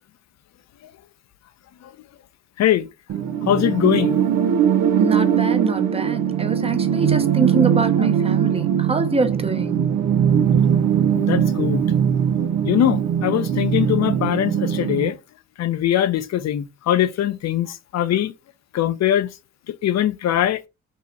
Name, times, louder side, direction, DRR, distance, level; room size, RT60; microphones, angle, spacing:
sound 1, 3.1-15.1, right 8 dB, 85° right, 0.6 m, -20 dB
voice 1, 3.5-4.2 11.1-11.8 12.6-15.2 15.6-18.3 18.7-19.3 19.7-20.6, left 11 dB, 60° left, 0.6 m, -21 dB
voice 2, 5.0-9.8, right 3 dB, 20° right, 0.8 m, -24 dB
5.5 x 2.1 x 4.0 m
cardioid pair, 90°, 30 cm